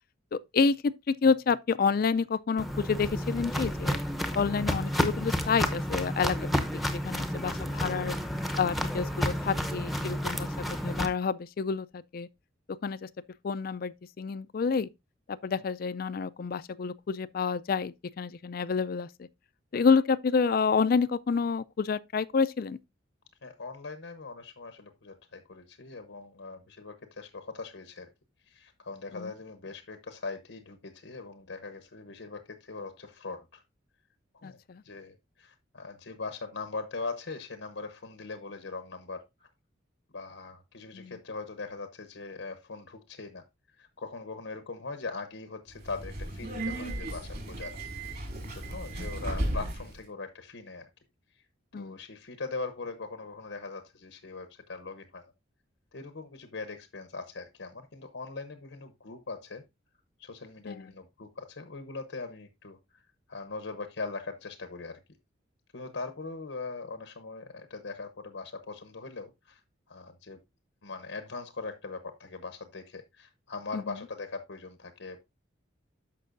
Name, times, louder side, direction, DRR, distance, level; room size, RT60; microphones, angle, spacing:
voice 1, 0.3-4.0 4.4-8.1 8.6-10.5 10.8-12.3 12.8-13.1 13.4-14.9 15.3-19.3 19.7-22.8 29.1-29.3 34.4-34.8 40.9-41.1 51.7-52.0 60.7-60.9 73.7-73.9, left 5 dB, 50° left, 0.4 m, -29 dB
Walk footsteps, 2.6-11.1, equal, ahead, 0.7 m, -31 dB
voice 2, 23.4-28.1 28.4-33.6 34.3-34.6 34.8-39.5 40.1-43.4 43.8-48.1 48.5-50.9 51.3-51.4 51.7-55.2 55.9-59.6 60.2-63.0 63.3-65.0 65.7-69.6 69.9-70.4 70.8-75.2, left 3 dB, 80° left, 1.0 m, -41 dB
Subway metro underground, 45.7-50.0, right 1 dB, 50° right, 3.5 m, -35 dB
13.0 x 5.4 x 2.5 m
head